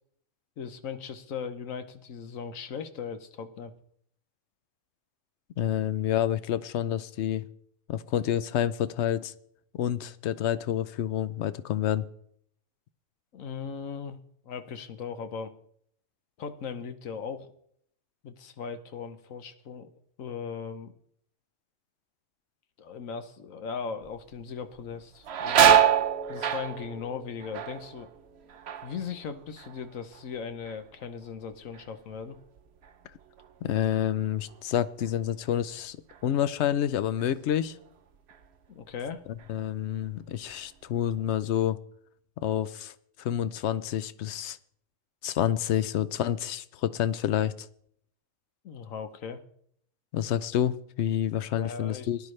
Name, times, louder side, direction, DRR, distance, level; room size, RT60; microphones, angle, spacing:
voice 1, 0.6-3.7 13.3-14.2 14.4-15.6 16.4-17.5 18.2-19.9 20.2-20.9 22.8-25.9 26.3-28.1 28.8-32.4 38.7-39.2 48.6-49.4 51.6-52.1, left 6 dB, 80° left, 9 dB, 1.3 m, -38 dB
voice 2, 5.6-7.4 7.9-9.3 9.7-12.1 33.6-36.0 36.2-37.8 39.5-41.8 42.4-42.9 43.2-44.6 45.2-47.7 50.1-52.2, left 10 dB, 65° left, 15 dB, 0.8 m, -28 dB
sound 1, 24.0-24.4 24.8-30.4 30.6-31.3 31.7-34.7 35.0-35.1 36.1-36.3 36.7-37.8 38.3-38.5 39.1-39.7 40.0-41.2, right 9 dB, 60° right, 1.0 m, -27 dB
18.0 x 10.5 x 3.2 m, 0.67 s
omnidirectional pair, 1.4 m